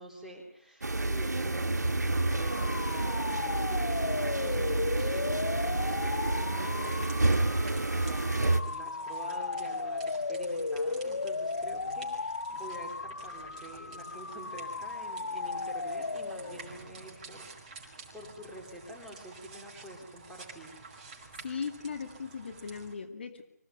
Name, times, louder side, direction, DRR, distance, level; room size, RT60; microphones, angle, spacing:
voice 1, 0.0-20.8, right 1 dB, ahead, -3 dB, 3.6 m, -47 dB
sound 1, 0.8-8.6, right 2 dB, 85° right, 1.4 m, -29 dB
sound 2, 2.1-16.8, left 3 dB, 70° left, 1.1 m, -35 dB
sound 3, 5.5-22.9, right 4 dB, 25° right, 5.0 m, -50 dB
voice 2, 21.4-23.5, left 5 dB, 40° left, 6 dB, 2.4 m, -38 dB
25.5 x 17.0 x 9.4 m, 0.72 s
figure-of-eight pair, 165°, 9 cm